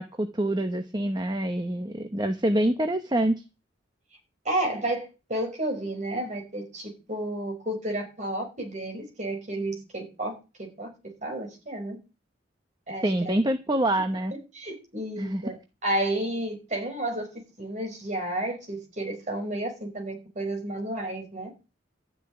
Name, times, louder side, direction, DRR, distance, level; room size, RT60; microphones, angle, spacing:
voice 1, 0.0-3.3 13.0-14.3 15.2-15.4, right 1 dB, 20° right, 7 dB, 1.0 m, -26 dB
voice 2, 4.4-10.9 11.2-12.0 12.9-13.4 14.3-17.3 17.6-21.5, right 1 dB, 40° right, 3 dB, 5.1 m, -31 dB
12.5 x 6.9 x 9.9 m, 0.31 s
head